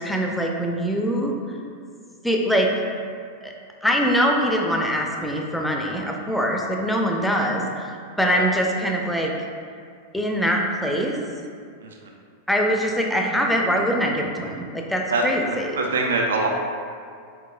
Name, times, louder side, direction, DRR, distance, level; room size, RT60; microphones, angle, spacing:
voice 1, 0.0-1.3 2.2-2.7 3.4-3.5 3.8-9.3 10.1-11.2 12.5-15.8, equal, 5° left, 1 dB, 0.5 m, -23 dB
voice 2, 15.1-16.5, right 2 dB, 65° right, 1 dB, 0.4 m, -24 dB
4.6 x 4.1 x 2.4 m, 2.2 s
figure-of-eight pair, 90°, 0 cm